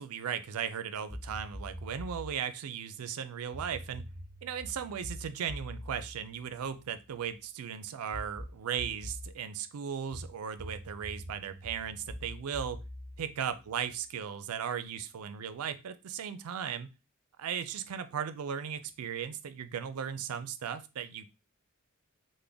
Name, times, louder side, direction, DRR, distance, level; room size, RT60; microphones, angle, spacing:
voice 1, 0.0-4.1 4.4-12.8 13.2-16.9 17.4-21.3, right 8 dB, 85° right, 11 dB, 0.4 m, -37 dB
sound 1, 1.1-2.4 3.5-7.2 8.1-9.4 10.1-14.0, equal, 20° left, 1.0 m, -44 dB
3.7 x 2.1 x 3.4 m, 0.28 s
head